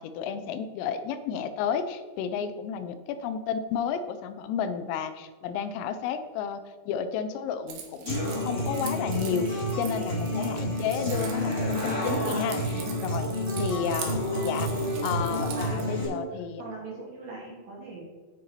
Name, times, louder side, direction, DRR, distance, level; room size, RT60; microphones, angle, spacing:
voice 1, 0.0-13.3 13.6-14.7 15.0-16.6, left 7 dB, 90° left, 10 dB, 3.4 m, -32 dB
Keys jangling, 7.7-15.8, right 8 dB, 85° right, 3.9 m, -43 dB
Human voice / Acoustic guitar, 8.1-16.0, equal, 45° left, 0.9 m, -29 dB
voice 2, 12.8-13.2 15.4-16.3 16.6-18.0, right 3 dB, 55° right, -4 dB, 2.9 m, -40 dB
10.5 x 6.6 x 4.2 m, 1.4 s
omnidirectional pair, 5.8 m